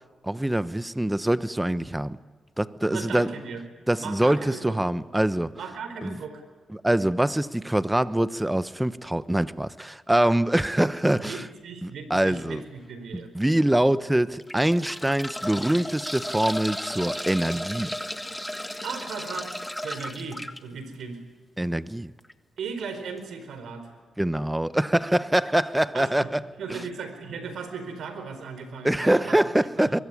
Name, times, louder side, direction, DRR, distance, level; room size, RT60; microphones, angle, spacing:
voice 1, 0.2-2.2 2.6-3.3 3.9-5.5 6.0-6.2 6.7-11.4 11.8-12.6 13.1-18.0 21.6-22.1 24.2-26.4 26.7-26.8 28.8-30.0, right 1 dB, 10° right, 1.1 m, -24 dB
voice 2, 2.9-3.6 4.0-4.8 5.5-6.4 11.2-13.3 18.8-19.5 19.8-21.2 22.6-23.9 25.9-26.3 26.6-29.4 29.8-30.0, right 5 dB, 80° right, 4.6 m, -37 dB
sound 1, 12.3-12.5 13.2-13.3 14.2-20.6 22.2-22.3 22.6-22.7, equal, 5° left, 1.6 m, -34 dB
23.5 x 22.0 x 10.0 m
cardioid pair, 65°, 0 cm